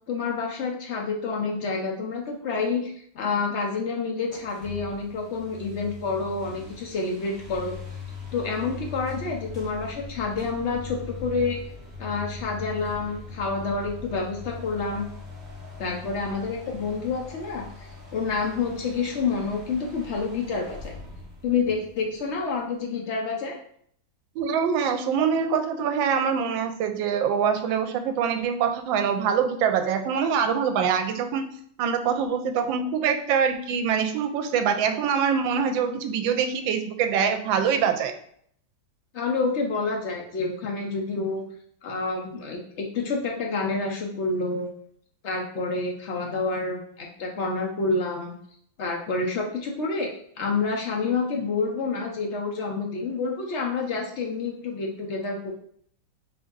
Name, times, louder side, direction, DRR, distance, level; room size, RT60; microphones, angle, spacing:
voice 1, 0.1-7.8 8.3-11.6 12.0-15.0 15.8-21.0 21.4-23.6 39.1-41.4 41.8-44.7 45.2-48.3 48.8-50.1 50.4-55.6, left 4 dB, 85° left, 0 dB, 0.6 m, -28 dB
sound 1, 4.3-22.8, left 4 dB, ahead, 0.7 m, -41 dB
voice 2, 24.4-31.5 31.8-38.1, right 7 dB, 85° right, 7 dB, 1.3 m, -24 dB
4.5 x 2.6 x 3.8 m, 0.63 s
omnidirectional pair, 2.0 m